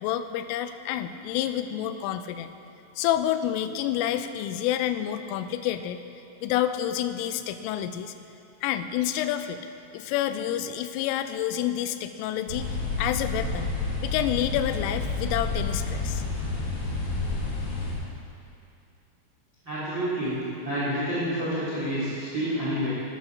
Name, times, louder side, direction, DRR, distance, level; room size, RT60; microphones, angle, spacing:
voice 1, 0.0-2.5 3.0-6.0 6.4-8.1 8.6-9.6 9.9-12.7 13.0-13.8 14.0-16.2, left 11 dB, 90° left, 10 dB, 3.2 m, -28 dB
sound 1, 12.5-17.9, left 3 dB, 40° left, 1.7 m, -30 dB
voice 2, 19.6-22.9, equal, 30° right, -10 dB, 2.6 m, -29 dB
13.0 x 9.3 x 5.9 m, 2.6 s
omnidirectional pair, 5.8 m